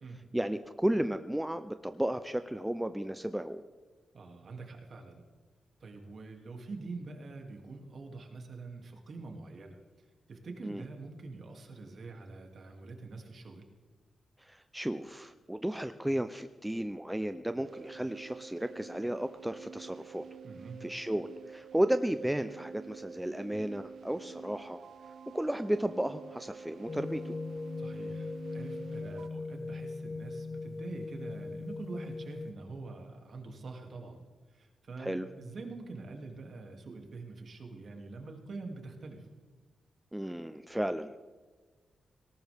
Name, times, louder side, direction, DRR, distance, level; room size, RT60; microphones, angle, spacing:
voice 1, 0.3-3.6 10.6-10.8 14.4-20.2 20.8-24.8 25.3-27.3 35.0-35.3 40.1-41.2, right 1 dB, 5° right, 9 dB, 0.5 m, -33 dB
voice 2, 4.1-5.2 5.8-9.8 10.3-13.6 20.4-20.9 27.8-34.2 34.5-39.3, right 3 dB, 50° right, 2 dB, 2.5 m, -45 dB
sound 1, 17.6-29.3, right 6 dB, 65° right, 0.6 m, -49 dB
sound 2, 26.9-32.5, left 3 dB, 30° left, 0.8 m, -39 dB
18.5 x 18.5 x 3.5 m, 1.4 s
wide cardioid pair, 145°, 0 cm